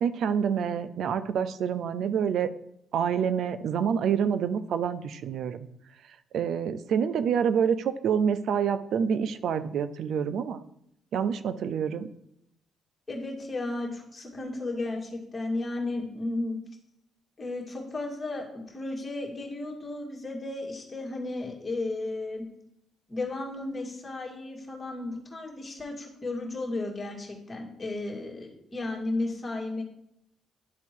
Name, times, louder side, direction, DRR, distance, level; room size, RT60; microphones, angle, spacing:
voice 1, 0.0-2.5 2.9-5.7 6.3-10.6 11.1-12.1, right 7 dB, 70° right, 13 dB, 0.5 m, -27 dB
voice 2, 13.1-16.6 17.4-22.4 23.1-29.8, left 2 dB, 25° left, -1 dB, 2.0 m, -34 dB
10.5 x 3.5 x 4.5 m, 0.77 s
cardioid pair, 90°, 0 cm